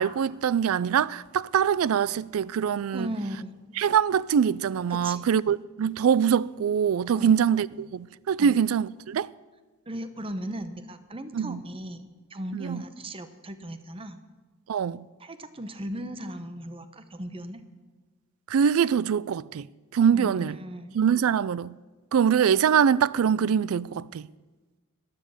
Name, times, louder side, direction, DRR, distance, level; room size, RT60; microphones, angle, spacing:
voice 1, 0.0-3.1 3.8-9.3 11.3-11.6 12.5-12.8 14.7-15.1 18.5-19.7 19.9-20.6 20.9-21.7 22.1-24.3, right 7 dB, 80° right, 0.4 m, -24 dB
voice 2, 2.9-3.5 4.9-5.3 7.1-7.3 8.4-8.6 9.9-14.2 15.2-17.6 20.1-21.0, right 1 dB, 25° right, 0.9 m, -37 dB
12.5 x 10.5 x 7.2 m
head